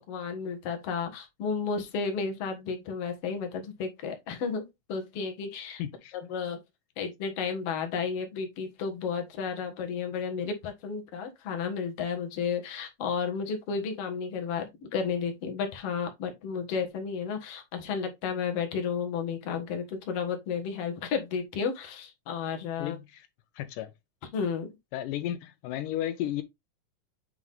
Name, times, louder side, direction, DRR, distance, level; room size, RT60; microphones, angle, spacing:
voice 1, 0.1-5.8 6.1-6.6 7.0-23.0 24.3-24.7, left 6 dB, 55° left, 2.1 m, -32 dB
voice 2, 5.8-6.1 22.8-23.3 23.6-23.9 24.9-26.4, left 12 dB, 80° left, 2.2 m, -33 dB
7.7 x 3.6 x 3.4 m
omnidirectional pair, 3.7 m